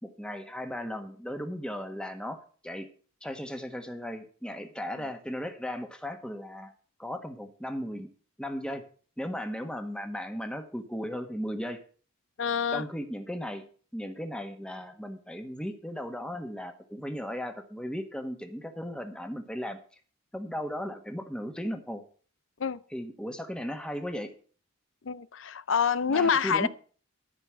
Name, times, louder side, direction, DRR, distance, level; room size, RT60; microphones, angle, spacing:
voice 1, 0.0-2.9 3.2-6.7 7.0-8.1 8.4-8.8 9.2-11.8 12.7-13.6 13.9-19.8 20.3-22.0 22.9-24.3 26.1-26.7, equal, 5° left, 1.4 m, -36 dB
voice 2, 12.4-12.8 22.6-22.8 25.1-26.7, left 6 dB, 60° left, 0.6 m, -26 dB
14.0 x 5.4 x 7.6 m
head